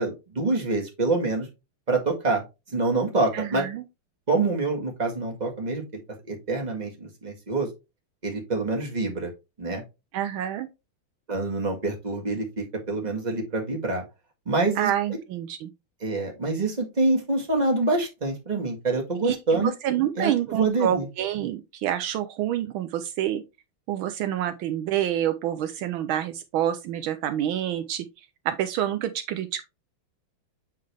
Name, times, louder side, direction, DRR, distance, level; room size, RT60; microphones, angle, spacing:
voice 1, 0.0-1.5 1.9-2.4 2.7-3.7 4.3-5.8 6.3-7.7 8.2-9.3 9.6-9.8 11.3-14.0 14.4-14.9 16.0-19.7 20.2-21.1, right 3 dB, 20° right, 1.5 m, -26 dB
voice 2, 3.3-3.8 10.1-10.7 14.8-15.7 19.2-23.4 23.9-28.1 28.4-29.7, right 11 dB, 80° right, 1.3 m, -27 dB
7.6 x 3.8 x 3.3 m
omnidirectional pair, 2.3 m